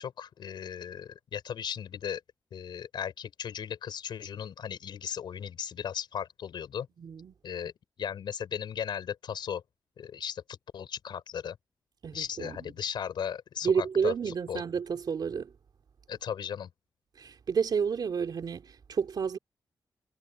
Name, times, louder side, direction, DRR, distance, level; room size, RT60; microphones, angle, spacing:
voice 1, 0.0-2.2 2.5-6.9 7.4-7.7 8.0-9.6 10.0-11.6 12.1-14.6 16.1-16.7, left 8 dB, 90° left, 4.7 m, -36 dB
voice 2, 7.0-7.3 12.0-12.7 13.6-15.5 17.2-19.4, right 6 dB, 65° right, 3.3 m, -30 dB
wide cardioid pair, 110°, 8 cm